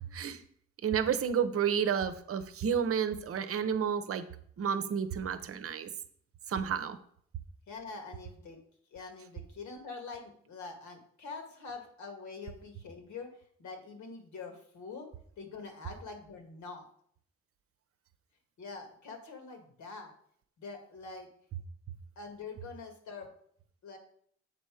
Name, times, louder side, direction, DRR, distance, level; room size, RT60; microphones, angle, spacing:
voice 1, 0.8-4.2 4.6-5.9 6.5-7.0, right 7 dB, 50° right, 11 dB, 0.8 m, -31 dB
voice 2, 7.7-8.6 8.9-13.3 13.6-15.1 15.4-16.9 18.6-20.1 20.6-21.3 22.2-23.3 23.8-24.0, left 4 dB, 70° left, 4 dB, 1.8 m, -45 dB
7.7 x 4.4 x 4.9 m, 0.63 s
cardioid pair, 90°, 30 cm